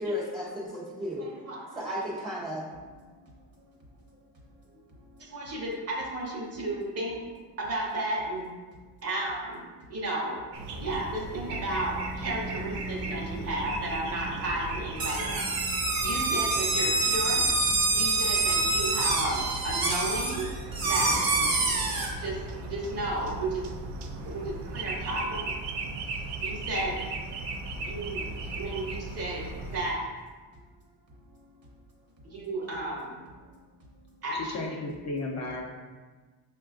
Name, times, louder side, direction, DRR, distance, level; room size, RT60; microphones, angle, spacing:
voice 1, 0.0-1.3 1.8-2.7, left 1 dB, 15° right, -6 dB, 0.5 m, -33 dB
voice 2, 1.2-1.9 5.3-7.2 7.6-8.5 9.0-9.6 9.9-10.4 10.7-15.5 16.0-17.4 17.9-20.4 20.8-21.2 22.2-23.6 24.2-25.5 26.4-27.0 27.8-28.2 28.6-29.5 29.7-30.0 32.3-33.1 34.2-34.8, right 1 dB, 40° right, -3 dB, 1.0 m, -33 dB
sound 1, 10.5-29.9, right 2 dB, 90° right, 0.5 m, -37 dB
sound 2, 15.0-22.1, right 3 dB, 60° right, 0.8 m, -26 dB
voice 3, 34.3-35.6, left 2 dB, 45° left, 0 dB, 0.5 m, -34 dB
5.4 x 2.3 x 2.4 m, 1.4 s
cardioid pair, 105°, 40 cm